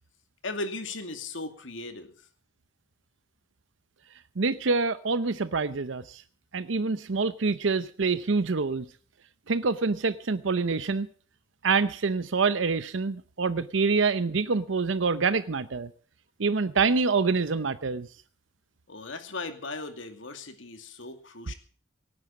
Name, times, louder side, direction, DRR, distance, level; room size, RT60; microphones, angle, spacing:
voice 1, 0.4-2.1 18.9-21.5, left 2 dB, 85° left, 7 dB, 2.4 m, -37 dB
voice 2, 4.4-6.2 6.5-8.9 9.5-11.1 11.6-15.9 16.4-18.1, right 4 dB, 80° right, 13 dB, 0.7 m, -26 dB
18.0 x 9.7 x 7.4 m, 0.44 s
head